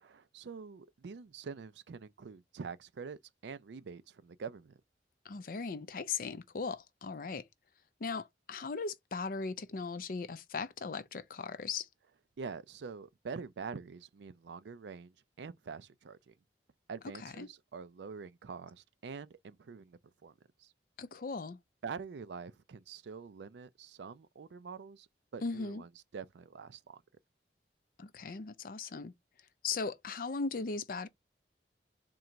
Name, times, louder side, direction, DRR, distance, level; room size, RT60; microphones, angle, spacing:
voice 1, 0.1-4.8 12.4-16.3 16.9-20.3 20.6-20.7 21.8-27.0, right 5 dB, 75° right, 0.4 m, -45 dB
voice 2, 5.2-7.5 8.0-11.9 17.2-17.5 21.0-21.6 25.4-25.8 28.0-29.1 29.6-31.1, left 4 dB, 50° left, 0.5 m, -38 dB
3.8 x 2.9 x 4.4 m
head